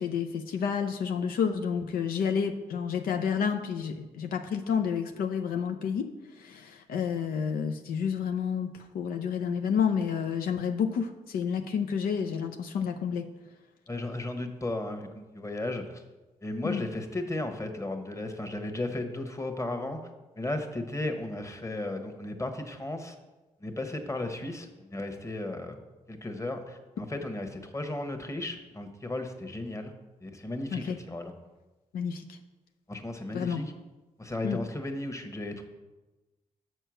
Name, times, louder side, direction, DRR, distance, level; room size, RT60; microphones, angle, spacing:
voice 1, 0.0-6.1 6.4-13.3 16.6-16.8 30.7-31.0 31.9-32.4 33.3-33.6 34.4-34.6, left 7 dB, 80° left, 6 dB, 0.5 m, -30 dB
voice 2, 13.9-16.0 16.4-20.0 20.4-23.1 23.6-25.8 26.1-29.9 30.2-31.3 32.9-33.7 34.2-35.7, left 2 dB, 20° left, 6 dB, 1.2 m, -35 dB
6.7 x 4.5 x 6.3 m, 1.1 s
supercardioid pair, 45°, 15 cm